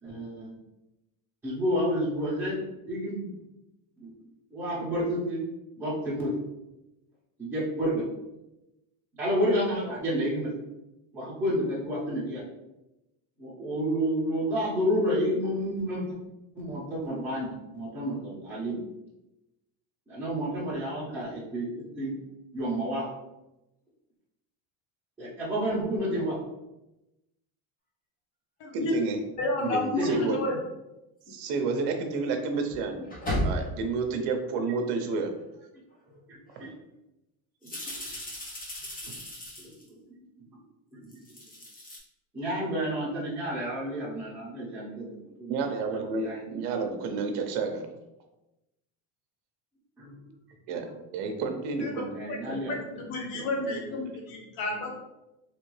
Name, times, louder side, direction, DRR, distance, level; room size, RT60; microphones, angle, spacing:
voice 1, 0.0-0.5 1.4-3.4 4.0-4.1 4.5-5.4 5.8-6.3 7.4-8.1 9.1-10.5 11.1-12.4 13.4-16.2 16.5-18.8 20.1-22.2 22.5-23.1 25.2-26.4 30.0-30.2 36.1-36.7 37.6-37.9 39.6-40.6 40.9-41.2 42.3-45.6 45.9-46.8 50.0-50.3 52.1-53.0 53.3-54.0, equal, 5° right, -9 dB, 1.0 m, -30 dB
voice 2, 28.7-29.2 29.6-30.4 31.3-33.1 33.4-35.3 39.1-39.2 45.5-47.9 50.7-50.9 51.1-52.1, right 4 dB, 65° right, 5 dB, 0.7 m, -30 dB
voice 3, 29.4-30.1 30.3-30.6 51.7-51.9 52.3-54.9, left 2 dB, 80° left, 0 dB, 1.2 m, -31 dB
sound 1, 29.6-29.7 31.3-31.4 32.7-33.9 35.9-36.0 36.5-36.7 37.6-39.9 41.0-42.0, equal, 20° left, 0.9 m, -34 dB
3.4 x 2.9 x 3.1 m, 0.95 s
cardioid pair, 150°, 43 cm